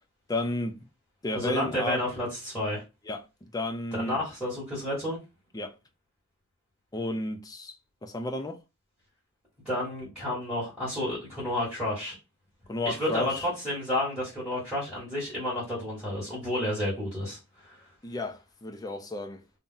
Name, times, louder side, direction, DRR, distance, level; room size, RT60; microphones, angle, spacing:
voice 1, 0.3-0.9 1.2-2.0 3.1-4.2 5.5-5.7 6.9-7.7 8.0-8.6 12.7-13.5 18.0-19.4, left 2 dB, 20° left, 0.4 m, -32 dB
voice 2, 1.3-2.8 4.0-5.2 9.6-12.2 12.8-17.8, left 1 dB, ahead, 1.4 m, -31 dB
2.7 x 2.0 x 3.7 m
head